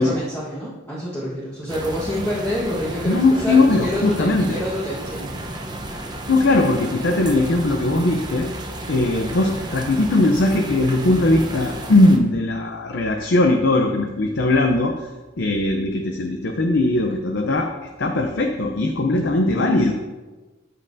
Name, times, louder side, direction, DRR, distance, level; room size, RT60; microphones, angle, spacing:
voice 1, 0.0-5.4, equal, 15° left, -7 dB, 1.4 m, -27 dB
sound 1, 1.7-12.2, right 1 dB, 20° right, 0.9 m, -33 dB
voice 2, 3.0-4.6 6.3-8.5 8.9-15.1 15.4-17.7 18.0-19.9, left 2 dB, 65° left, 3 dB, 0.6 m, -19 dB
13.5 x 5.4 x 2.7 m, 1.2 s
head